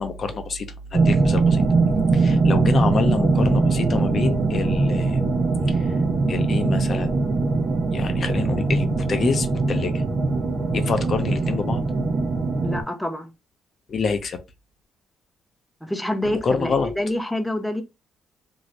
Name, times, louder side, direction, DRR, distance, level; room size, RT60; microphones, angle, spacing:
voice 1, 0.0-1.6 2.1-5.2 5.7-5.8 6.3-7.1 7.9-10.0 10.7-11.8 13.9-14.4 16.2-16.9, left 5 dB, 50° left, 0.5 m, -27 dB
sound 1, 0.9-12.8, right 3 dB, 50° right, 0.8 m, -21 dB
voice 2, 12.6-13.3 15.8-17.8, left 1 dB, 5° left, 0.6 m, -27 dB
2.7 x 2.6 x 3.1 m
cardioid pair, 90°, 0 cm